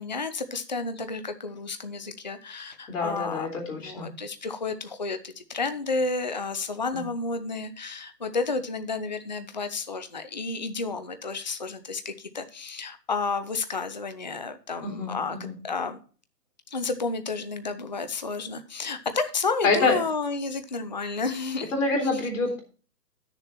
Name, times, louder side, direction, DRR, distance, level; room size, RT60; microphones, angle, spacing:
voice 1, 0.0-15.4 15.6-16.0 16.7-21.7, left 4 dB, 30° left, 9 dB, 0.4 m, -31 dB
voice 2, 2.9-4.1 6.9-7.0 14.8-15.6 19.6-20.0 21.7-22.6, left 3 dB, 50° left, 2 dB, 3.7 m, -26 dB
10.5 x 6.7 x 4.3 m, 0.38 s
figure-of-eight pair, 140°, 49 cm